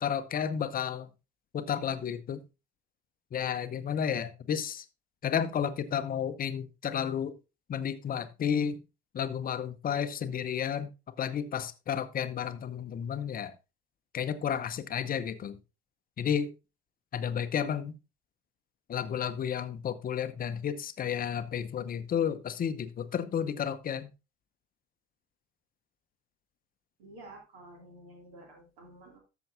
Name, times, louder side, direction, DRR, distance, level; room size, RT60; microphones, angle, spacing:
voice 1, 0.0-1.1 1.5-2.4 3.3-4.8 5.2-7.4 7.7-8.8 9.1-10.9 11.2-13.5 14.1-15.6 16.2-16.5 17.1-17.9 18.9-24.1, left 8 dB, 25° left, 12 dB, 0.8 m, -32 dB
voice 2, 27.0-29.2, right 1 dB, 65° right, 1 dB, 2.6 m, -51 dB
13.0 x 7.0 x 2.6 m, 0.27 s
figure-of-eight pair, 65°, 34 cm